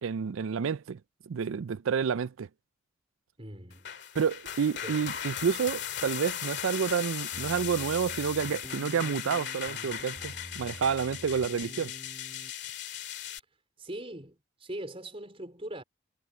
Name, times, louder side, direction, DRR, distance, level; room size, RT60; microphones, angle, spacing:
voice 1, 0.0-1.0 1.3-2.5 4.2-11.9, right 6 dB, 80° right, 0.4 m, -29 dB
voice 2, 3.4-3.9 4.8-5.0 13.8-15.8, right 1 dB, 30° right, 4.5 m, -41 dB
sound 1, 3.7-13.4, left 10 dB, 55° left, 2.2 m, -38 dB
sound 2, 7.3-12.5, equal, 10° left, 3.4 m, -47 dB
head